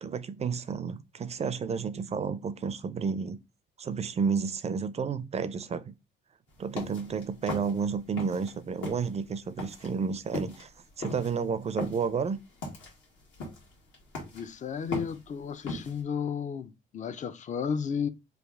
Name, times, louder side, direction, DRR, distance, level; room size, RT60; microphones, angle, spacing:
voice 1, 0.0-3.4 3.8-5.9 6.6-10.7 11.0-12.4, right 6 dB, 35° right, 0.4 m, -31 dB
sound 1, 6.5-8.5 8.8-16.0, left 2 dB, 75° left, 1.6 m, -38 dB
voice 2, 14.3-18.1, left 7 dB, 40° left, 0.4 m, -33 dB
3.3 x 2.4 x 3.5 m
cardioid pair, 90°, 20 cm